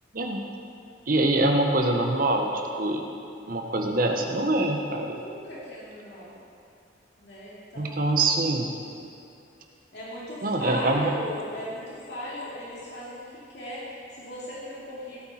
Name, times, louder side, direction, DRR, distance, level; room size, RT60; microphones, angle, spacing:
voice 1, 1.1-3.0 3.5-5.2 7.8-8.7 10.4-11.1, right 2 dB, 50° right, 3 dB, 1.0 m, -24 dB
voice 2, 5.1-6.4 7.2-8.0 9.9-13.2 13.5-15.2, equal, 65° left, -7 dB, 2.7 m, -37 dB
16.5 x 8.8 x 4.3 m, 2.6 s
head